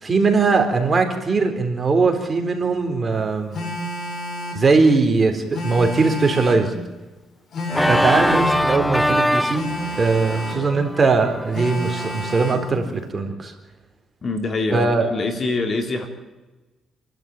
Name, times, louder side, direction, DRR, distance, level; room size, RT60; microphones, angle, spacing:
voice 1, 0.0-3.6 4.5-6.7 7.9-9.7 10.0-13.5 14.7-15.1, right 4 dB, 30° right, 5 dB, 4.0 m, -20 dB
Telephone, 3.5-4.7 5.5-6.7 7.5-8.7 9.5-10.7 11.5-12.7, equal, 60° left, 5.0 m, -30 dB
Organ, 7.7-12.5, equal, 5° left, 0.7 m, -23 dB
voice 2, 14.2-16.1, left 3 dB, 45° left, 6 dB, 3.4 m, -24 dB
28.0 x 12.0 x 9.2 m, 1.2 s
cardioid pair, 90°, 0 cm